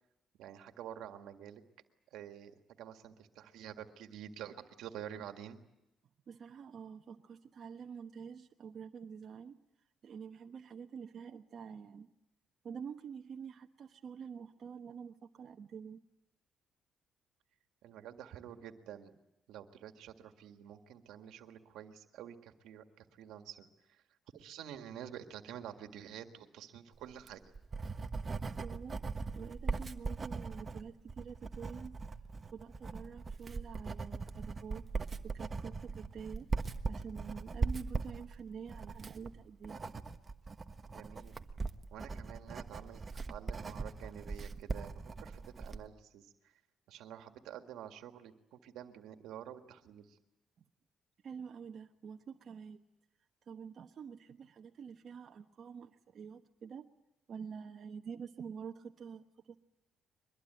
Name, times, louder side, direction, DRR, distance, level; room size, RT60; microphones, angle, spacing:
voice 1, 0.4-1.6 2.1-5.6 17.8-19.2 19.5-24.0 24.3-27.4 40.9-41.4 41.9-46.5 46.9-50.2, right 10 dB, 85° right, 7 dB, 1.8 m, -49 dB
voice 2, 6.3-9.6 10.0-12.1 12.6-16.0 28.6-29.0 29.3-32.0 32.5-34.8 35.2-36.5 36.9-39.8 50.6-50.7 51.2-52.8 53.5-56.9 57.3-59.6, right 6 dB, 55° right, 3 dB, 1.2 m, -47 dB
Writing, 27.1-45.9, right 4 dB, 35° right, 1.3 m, -40 dB
23.5 x 21.0 x 9.2 m, 0.88 s
cardioid pair, 90°, 0 cm